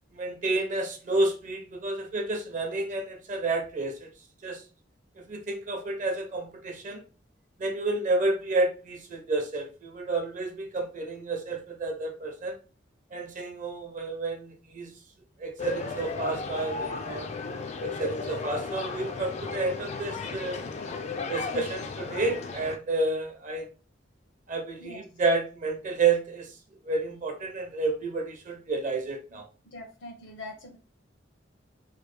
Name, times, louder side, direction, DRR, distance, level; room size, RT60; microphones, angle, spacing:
voice 1, 0.1-4.1 4.4-4.6 5.2-7.0 7.6-12.6 13.1-14.9 15.4-17.3 17.8-20.6 21.3-23.7 24.5-26.6 26.8-29.5, right 3 dB, 40° right, 3 dB, 0.7 m, -30 dB
sound 1, 15.6-22.8, left 4 dB, 35° left, 0.3 m, -35 dB
voice 2, 29.6-30.8, left 2 dB, 85° left, 1 dB, 1.0 m, -43 dB
3.1 x 2.2 x 3.3 m, 0.35 s
head